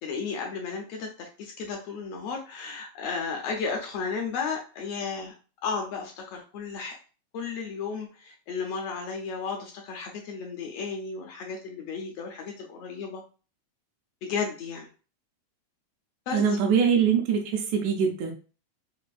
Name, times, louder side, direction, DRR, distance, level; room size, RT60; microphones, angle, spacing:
voice 1, 0.0-5.3 5.6-7.0 7.3-13.2 14.2-14.9 16.3-16.6, left 5 dB, 75° left, 1 dB, 1.5 m, -34 dB
voice 2, 16.3-18.3, right 7 dB, 85° right, 2 dB, 2.0 m, -23 dB
5.1 x 2.5 x 2.3 m, 0.36 s
omnidirectional pair, 3.3 m